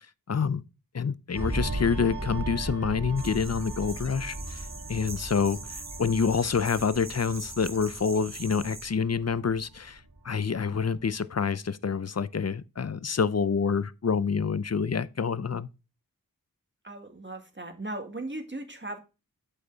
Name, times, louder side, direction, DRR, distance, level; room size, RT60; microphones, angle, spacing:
voice 1, 0.3-0.6 0.9-15.7, left 5 dB, 45° left, 0.6 m, -27 dB
sound 1, 1.3-10.4 10.7-11.0, right 1 dB, 90° right, 2.7 m, -37 dB
sound 2, 3.2-8.9, right 3 dB, 50° right, 1.2 m, -43 dB
voice 2, 16.8-19.0, right 2 dB, 30° right, 1.9 m, -37 dB
8.1 x 5.6 x 4.0 m
wide cardioid pair, 50°, 36 cm